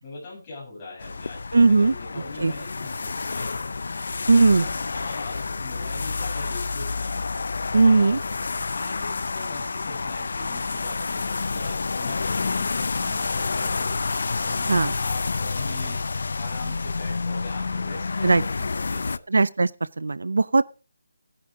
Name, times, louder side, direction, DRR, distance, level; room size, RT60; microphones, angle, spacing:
voice 1, 0.0-3.7 4.3-7.3 7.8-8.2 8.7-13.9 14.4-16.0 16.4-19.4, left 3 dB, 15° left, 7.5 m, -40 dB
sound 1, 1.0-19.2, left 4 dB, 50° left, 0.5 m, -29 dB
voice 2, 1.5-1.9 2.4-2.5 4.3-4.7 7.7-8.2 14.7-14.9 18.2-18.4 19.3-19.7 20.0-20.6, right 3 dB, 75° right, 0.6 m, -18 dB
16.0 x 10.5 x 3.7 m
hypercardioid pair, 180°, 0 cm